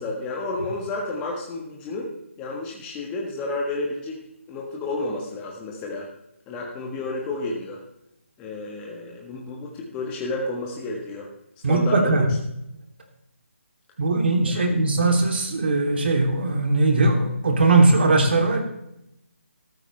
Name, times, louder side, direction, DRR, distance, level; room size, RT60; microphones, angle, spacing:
voice 1, 0.0-2.1 2.4-4.2 4.5-6.1 6.5-7.8 8.4-11.3 11.7-12.2 14.4-14.7, left 2 dB, 15° left, -1 dB, 1.4 m, -31 dB
voice 2, 11.6-12.3 14.0-18.6, right 2 dB, 50° right, 2 dB, 3.0 m, -19 dB
14.0 x 13.0 x 3.3 m, 0.83 s
figure-of-eight pair, 155°, 7 cm